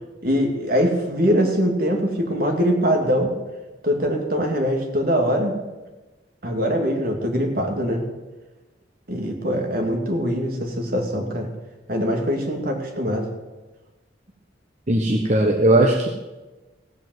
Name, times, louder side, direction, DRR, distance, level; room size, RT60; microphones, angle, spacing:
voice 1, 0.2-3.3 3.8-5.5 6.4-8.0 9.1-11.5 11.9-13.3, equal, 55° right, 2 dB, 2.4 m, -22 dB
voice 2, 14.9-16.1, right 1 dB, 40° right, 3 dB, 1.0 m, -18 dB
15.5 x 8.1 x 7.8 m, 1.2 s
head